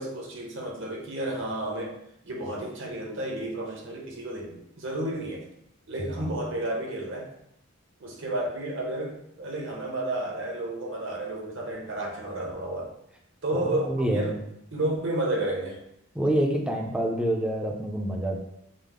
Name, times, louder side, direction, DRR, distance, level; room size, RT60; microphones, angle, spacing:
voice 1, 0.0-2.0 2.2-5.4 5.9-7.3 8.0-12.9 13.4-14.3 14.7-15.8, right 1 dB, 55° right, 0 dB, 0.9 m, -31 dB
voice 2, 13.5-14.3 16.2-18.4, right 1 dB, 5° right, 0 dB, 0.4 m, -27 dB
5.1 x 2.0 x 3.6 m, 0.78 s
head